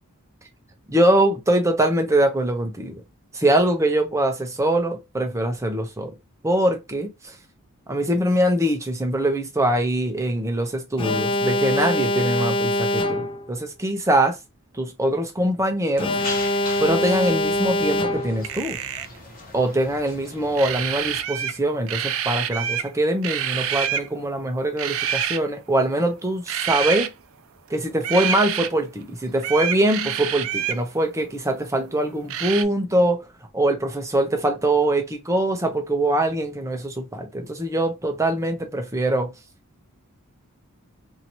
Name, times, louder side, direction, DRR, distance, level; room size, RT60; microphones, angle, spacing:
voice 1, 0.9-3.0 3.3-6.1 6.4-7.1 7.9-14.4 14.8-16.1 16.8-18.8 19.5-27.1 27.7-33.2 33.5-39.3, right 1 dB, 15° right, 0.7 m, -23 dB
Alarm, 11.0-13.5 16.0-18.5, left 1 dB, 25° left, 0.4 m, -24 dB
sound 1, 15.9-21.2, left 3 dB, 40° left, 1.0 m, -39 dB
sound 2, 18.4-19.2 20.5-21.6 21.9-22.9 23.2-24.1 24.8-25.4 26.5-27.1 28.0-28.7 29.4-30.8 32.3-32.6, right 9 dB, 65° right, 0.4 m, -27 dB
2.9 x 2.6 x 2.9 m
head